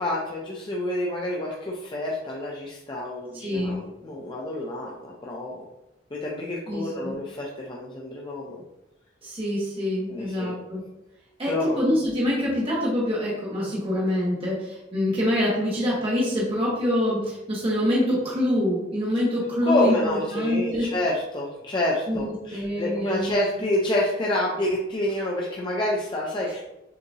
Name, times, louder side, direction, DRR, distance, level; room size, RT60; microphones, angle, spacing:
voice 1, 0.0-5.6 6.1-8.6 10.1-10.6 11.4-11.8 19.6-26.6, left 1 dB, 25° left, -3 dB, 0.6 m, -28 dB
voice 2, 3.3-3.8 6.7-7.1 9.2-10.8 11.4-20.9 22.1-23.3, left 1 dB, 30° right, -6 dB, 1.1 m, -25 dB
6.5 x 2.8 x 2.7 m, 0.92 s
head